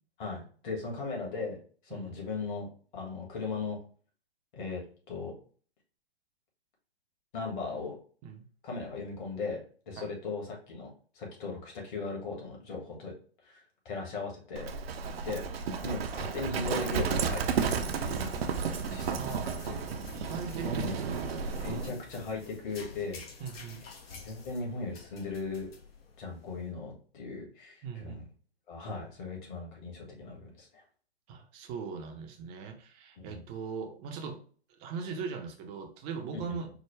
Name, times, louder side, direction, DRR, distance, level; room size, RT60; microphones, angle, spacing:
voice 1, 0.2-1.6 1.8-2.7 2.9-3.8 4.5-4.8 5.1-5.3 7.3-8.0 8.6-13.1 13.4-14.7 15.2-15.4 15.8-18.6 18.9-19.8 20.6-20.9 21.6-23.2 24.1-25.7 26.2-28.2 28.7-30.8 33.2-33.4 36.3-36.6, left 4 dB, 50° left, -1 dB, 1.7 m, -38 dB
Livestock farm animals working animals, 14.6-21.9, right 6 dB, 70° right, 0.6 m, -32 dB
sound 1, 16.7-26.6, left 5 dB, 70° left, 0.8 m, -50 dB
voice 2, 19.1-19.6 20.1-21.3 23.4-23.8 27.8-28.2 31.3-34.4 34.8-36.7, right 5 dB, 20° right, 3 dB, 0.5 m, -40 dB
4.6 x 2.1 x 3.1 m, 0.43 s
figure-of-eight pair, 120°, 31 cm